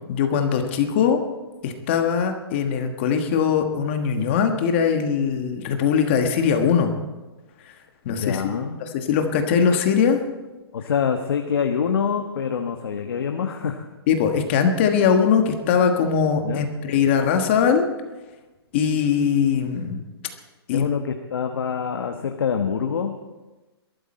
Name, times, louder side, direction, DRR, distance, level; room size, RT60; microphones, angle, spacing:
voice 1, 0.1-1.2 1.6-6.9 8.0-10.2 14.1-17.9 18.7-20.0 20.7-20.9, left 7 dB, 25° left, 5 dB, 1.4 m, -21 dB
voice 2, 8.2-8.8 10.7-13.9 16.4-16.7 20.7-23.1, left 7 dB, 60° left, 5 dB, 1.3 m, -25 dB
21.5 x 13.5 x 4.3 m, 1.1 s
hypercardioid pair, 175°, 14 cm